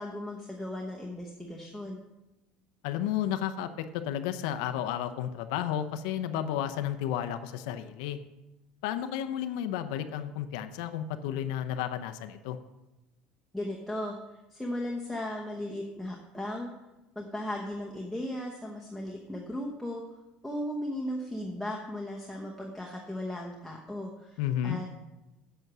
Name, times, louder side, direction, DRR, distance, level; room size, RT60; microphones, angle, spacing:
voice 1, 0.0-2.0 13.5-16.7 17.2-20.0 20.4-24.9, left 1 dB, ahead, -2 dB, 0.9 m, -36 dB
voice 2, 2.8-8.2 8.8-12.6 24.4-24.8, left 10 dB, 85° left, 8 dB, 0.7 m, -32 dB
8.1 x 7.9 x 6.1 m, 1.0 s
cardioid pair, 165°, 3 cm